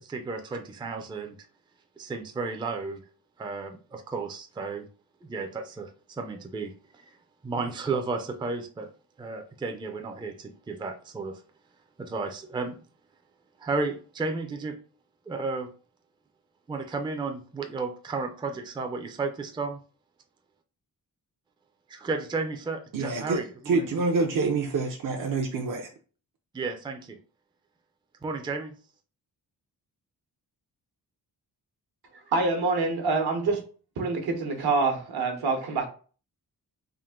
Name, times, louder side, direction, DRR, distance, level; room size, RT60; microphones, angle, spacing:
voice 1, 0.0-1.4 2.0-3.0 3.4-4.9 5.2-7.2 7.4-8.9 9.2-11.4 12.0-12.8 13.6-14.8 15.3-15.7 16.7-19.8 21.9-23.9 26.5-27.2 28.2-28.7, right 3 dB, 15° right, 0.4 m, -33 dB
voice 2, 22.9-25.9, right 3 dB, 60° right, 0.6 m, -27 dB
voice 3, 32.3-33.6 34.0-35.9, right 3 dB, 75° right, 1.1 m, -26 dB
3.7 x 2.5 x 3.6 m
wide cardioid pair, 140°, 38 cm